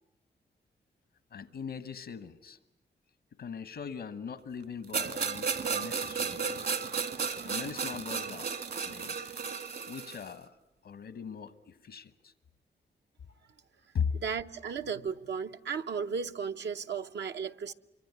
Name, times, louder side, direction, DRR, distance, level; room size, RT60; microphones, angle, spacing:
voice 1, 1.3-2.6 3.4-6.6 7.4-8.5 8.8-9.2 9.9-10.5 10.8-12.3 13.9-14.2, left 6 dB, 80° left, 1.1 m, -39 dB
sound 1, 4.9-10.3, right 5 dB, 65° right, 2.1 m, -34 dB
voice 2, 14.2-17.7, right 6 dB, 80° right, 0.9 m, -35 dB
25.0 x 24.5 x 9.5 m
cardioid pair, 75°, 18 cm